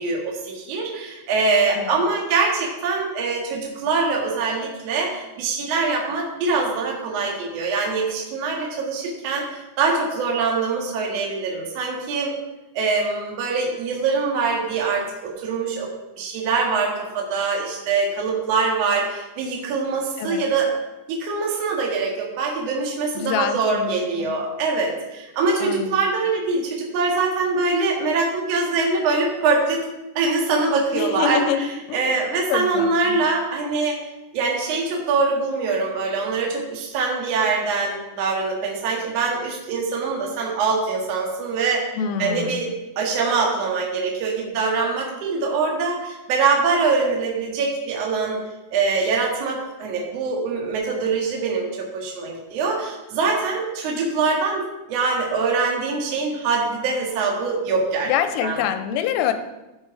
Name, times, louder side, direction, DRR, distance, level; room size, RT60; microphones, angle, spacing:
voice 1, 0.0-12.3 12.7-15.9 16.1-20.7 21.1-29.8 30.1-34.0 34.3-41.8 42.2-48.4 48.7-58.1 58.4-58.6, right 4 dB, 55° right, -1 dB, 1.8 m, -23 dB
voice 2, 23.2-24.3 25.6-26.0 30.9-32.1 32.5-32.9 42.0-42.6 58.1-59.3, left 9 dB, 85° left, 10 dB, 3.2 m, -25 dB
14.0 x 5.2 x 4.7 m, 1.0 s
omnidirectional pair, 5.8 m